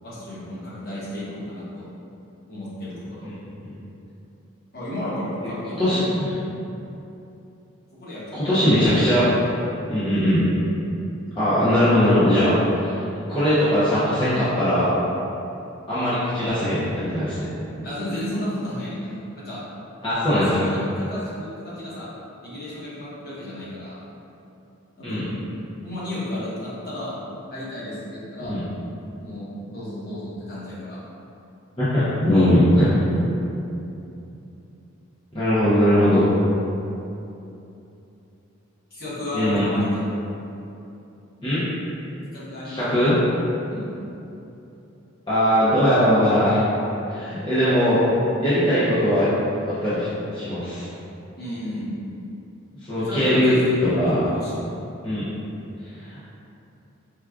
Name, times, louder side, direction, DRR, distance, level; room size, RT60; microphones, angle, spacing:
voice 1, 0.0-1.8 2.5-3.3 4.7-6.2 6.4-6.6 7.9-8.8 17.8-19.6 20.3-22.1 22.4-24.0 25.0-25.3 25.8-27.1 27.5-28.6 29.2-31.0 36.1-36.2 38.9-40.0 42.3-43.1 43.7-43.9 51.4-51.9 53.0-54.6, left 1 dB, 45° left, -9 dB, 0.9 m, -33 dB
voice 2, 8.3-9.3 9.9-10.5 11.4-13.0 13.3-14.9 15.9-17.5 20.0-20.5 25.0-25.2 28.4-28.6 31.8-33.2 35.3-36.2 39.3-39.7 41.4-41.7 42.6-43.2 45.3-46.6 47.1-48.0 48.4-49.3 49.6-50.9 52.8-53.5 53.8-54.2 55.0-55.3 56.0-56.2, equal, 25° left, -13 dB, 0.6 m, -20 dB
4.6 x 2.3 x 2.3 m, 2.8 s
head